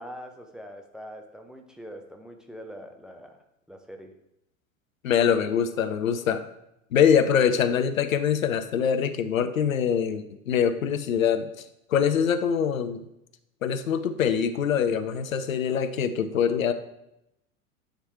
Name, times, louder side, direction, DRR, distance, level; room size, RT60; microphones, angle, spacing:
voice 1, 0.0-4.1, equal, ahead, 4 dB, 0.6 m, -43 dB
voice 2, 5.0-6.5 6.9-13.0 13.6-16.7, left 8 dB, 70° left, 11 dB, 0.6 m, -24 dB
9.0 x 3.2 x 4.6 m, 0.84 s
figure-of-eight pair, 80°, 42 cm